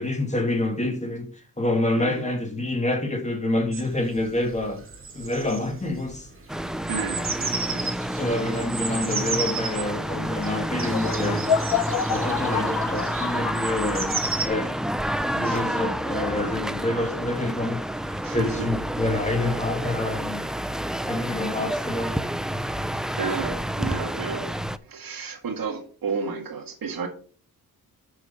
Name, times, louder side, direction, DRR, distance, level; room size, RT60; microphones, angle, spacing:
voice 1, 0.0-4.8 5.1-6.3 8.2-11.5 12.1-14.7 15.3-20.5 21.1-22.2, left 2 dB, 20° left, 2.0 m, -27 dB
voice 2, 2.0-2.3 6.9-7.9 8.5-8.6 15.4-15.6 18.2-18.7 22.8-24.5 24.8-27.1, right 5 dB, 65° right, 2.0 m, -32 dB
sound 1, 3.7-14.5, right 4 dB, 35° right, 1.9 m, -34 dB
sound 2, 6.5-24.8, right 1 dB, ahead, 0.3 m, -29 dB
sound 3, 10.9-14.4, left 8 dB, 80° left, 0.8 m, -28 dB
6.9 x 6.4 x 5.5 m
wide cardioid pair, 130°, 36 cm